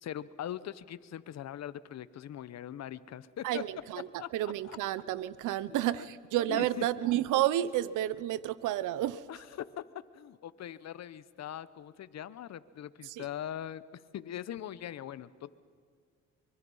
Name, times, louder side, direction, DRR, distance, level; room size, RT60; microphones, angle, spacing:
voice 1, 0.0-3.6 4.2-4.8 5.5-5.6 5.9-6.1 6.5-6.9 9.3-9.8 10.1-15.5, left 11 dB, 60° left, 0.9 m, -41 dB
voice 2, 3.4-4.1 4.3-9.3 13.0-13.2, right 13 dB, 85° right, 0.7 m, -31 dB
24.0 x 23.5 x 5.6 m
cardioid pair, 90°, 30 cm